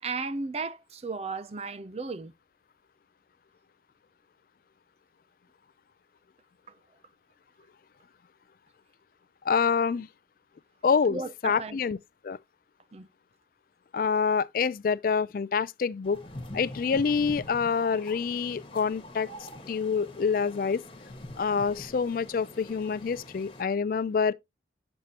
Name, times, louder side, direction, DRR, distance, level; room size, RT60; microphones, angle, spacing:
voice 1, 0.0-2.3 11.1-11.8 12.9-13.1, right 4 dB, 35° right, 0.5 m, -35 dB
voice 2, 9.4-10.1 10.8-12.0 12.2-12.4 13.9-16.3 16.5-19.3 19.7-20.8 21.4-24.3, left 5 dB, 50° left, 0.3 m, -27 dB
sound 1, 16.0-23.6, left 1 dB, 30° left, 1.4 m, -44 dB
8.0 x 6.7 x 2.8 m
head